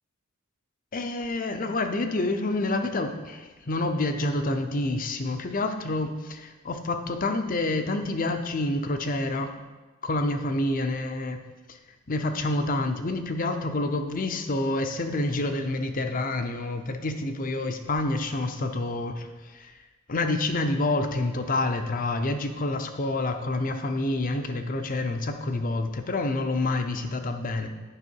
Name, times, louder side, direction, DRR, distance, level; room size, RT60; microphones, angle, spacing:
voice 1, 0.9-9.5 10.0-11.4 11.7-11.8 12.1-19.8 20.1-27.7, left 2 dB, 40° left, 7 dB, 0.6 m, -28 dB
9.8 x 5.6 x 4.6 m, 1.2 s
head